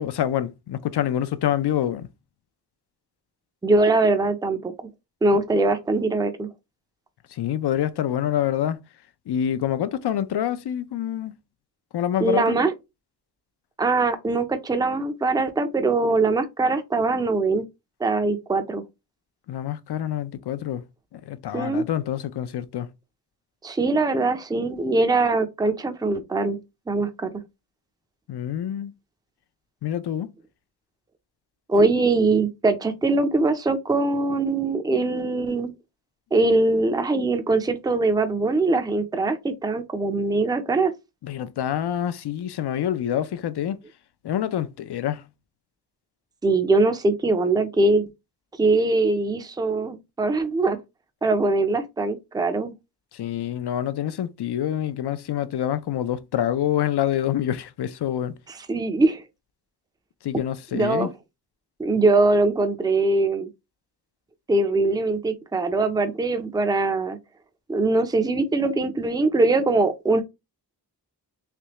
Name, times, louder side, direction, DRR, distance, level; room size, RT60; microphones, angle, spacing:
voice 1, 0.0-2.1 7.3-8.8 9.3-11.3 11.9-12.5 19.5-20.8 21.1-22.9 28.3-28.9 29.8-30.3 41.2-43.8 44.2-45.2 53.1-58.3 60.2-61.1, left 10 dB, 70° left, 0.6 m, -26 dB
voice 2, 3.6-4.7 5.2-6.5 12.2-12.7 13.8-17.6 18.0-18.8 21.5-21.9 23.6-26.6 26.9-27.3 31.7-35.7 36.3-40.9 46.4-48.1 48.6-50.8 51.2-52.7 58.7-59.2 60.7-61.1 61.8-63.5 64.5-67.2 67.7-70.2, right 3 dB, 10° right, 0.4 m, -22 dB
3.4 x 3.2 x 2.9 m
wide cardioid pair, 120°, 41 cm